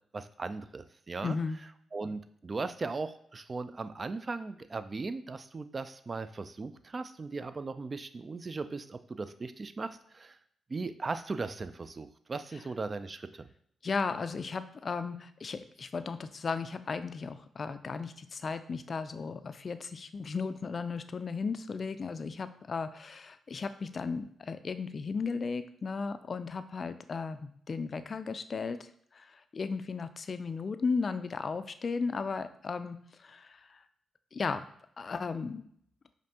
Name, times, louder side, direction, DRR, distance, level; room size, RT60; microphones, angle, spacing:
voice 1, 0.1-1.4 1.9-10.4 10.7-13.5, right 3 dB, 40° right, 11 dB, 0.3 m, -38 dB
voice 2, 1.2-1.6 13.8-28.8 29.1-33.8 34.3-34.6 35.0-35.6, left 4 dB, 50° left, 11 dB, 0.3 m, -35 dB
5.1 x 2.5 x 2.8 m, 0.67 s
supercardioid pair, 50°, 0 cm